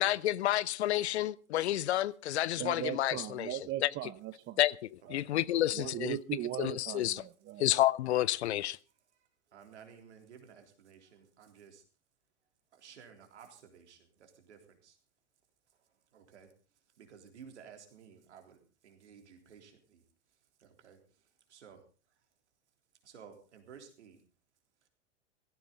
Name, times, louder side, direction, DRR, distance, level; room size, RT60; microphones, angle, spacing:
voice 1, 0.0-3.9 4.6-6.2 6.6-7.2 7.6-8.8, left 14 dB, 65° left, 0.7 m, -30 dB
voice 2, 2.6-4.6 5.1-5.2 5.5-7.7, right 14 dB, 30° right, 0.9 m, -39 dB
voice 3, 9.5-11.8 12.7-15.0 16.1-16.5 17.0-20.0 20.6-21.0 21.5-21.8 23.0-24.2, right 7 dB, 70° right, 3.7 m, -54 dB
17.0 x 15.5 x 4.0 m
figure-of-eight pair, 90°, 36 cm